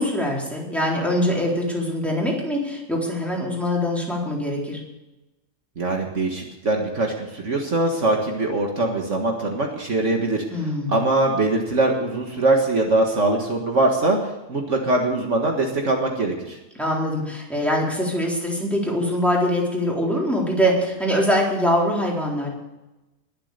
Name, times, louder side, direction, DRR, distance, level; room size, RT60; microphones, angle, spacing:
voice 1, 0.0-4.8 10.5-11.0 16.8-22.5, equal, ahead, -3 dB, 4.0 m, -23 dB
voice 2, 5.8-16.6, right 2 dB, 55° right, 1 dB, 2.0 m, -22 dB
21.5 x 7.7 x 6.8 m, 1.0 s
omnidirectional pair, 1.5 m